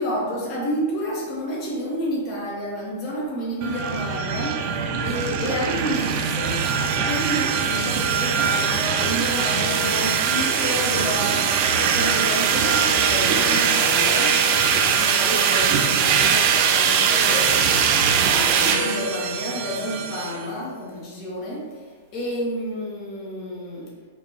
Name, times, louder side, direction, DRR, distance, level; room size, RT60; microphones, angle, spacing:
voice 1, 0.0-17.5 18.0-23.9, equal, 35° left, -4 dB, 1.3 m, -30 dB
sound 1, 3.6-20.4, right 6 dB, 40° right, 0.4 m, -21 dB
4.3 x 2.9 x 3.0 m, 1.5 s
figure-of-eight pair, 100°, 0 cm